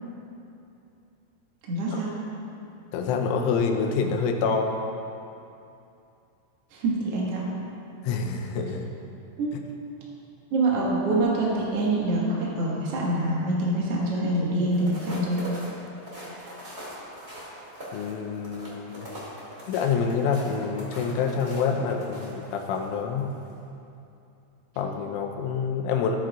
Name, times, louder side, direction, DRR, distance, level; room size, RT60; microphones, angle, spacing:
voice 1, 1.7-2.1 6.7-7.5 9.4-9.5 10.5-15.4, right 2 dB, 85° right, -5 dB, 1.3 m, -25 dB
voice 2, 2.9-4.8 8.0-9.0 9.5-9.6 17.9-19.1 19.7-23.3 24.8-26.2, left 5 dB, 90° left, 3 dB, 3.2 m, -27 dB
sound 1, 14.7-22.8 23.3-23.5, equal, 30° right, 1.1 m, -41 dB
16.0 x 9.0 x 2.5 m, 2.7 s
omnidirectional pair, 5.5 m